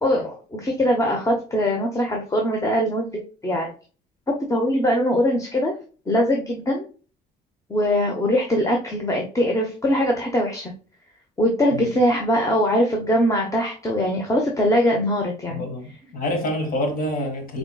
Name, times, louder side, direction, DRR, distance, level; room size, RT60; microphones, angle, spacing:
voice 1, 0.0-3.7 4.5-5.7 6.1-6.8 7.7-10.7 11.4-15.6, equal, 20° left, 1.0 m, -22 dB
voice 2, 15.5-17.6, left 1 dB, 55° left, 1.7 m, -27 dB
5.5 x 3.5 x 2.3 m
cardioid pair, 110°, 17 cm